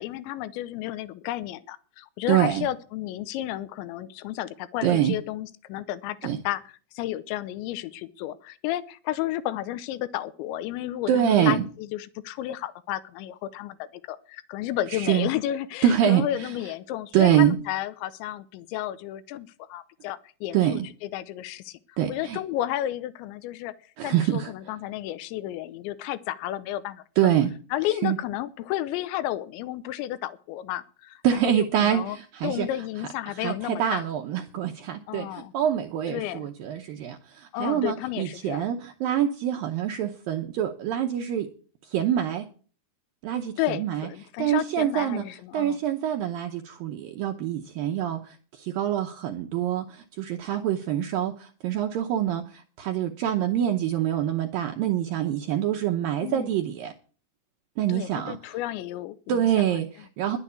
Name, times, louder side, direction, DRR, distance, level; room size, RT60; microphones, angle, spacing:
voice 1, 0.0-6.6 6.9-23.7 24.0-27.4 27.7-32.2 32.4-34.0 35.1-35.5 36.1-36.5 37.5-38.7 43.6-45.8 56.2-56.5 57.9-59.5, left 13 dB, 85° left, 17 dB, 3.1 m, -32 dB
voice 2, 2.3-2.7 4.8-5.2 6.2-6.4 11.1-11.6 14.9-15.3 15.8-16.5 17.1-17.6 20.5-20.9 22.0-22.4 24.0-24.5 27.2-27.5 28.0-28.2 31.2-32.7 33.3-41.5 41.9-42.5 43.2-44.1 44.4-45.2 45.5-56.9 57.8-58.4 59.3-60.4, right 10 dB, 75° right, 3 dB, 2.1 m, -25 dB
11.0 x 8.2 x 8.5 m, 0.41 s
omnidirectional pair, 5.1 m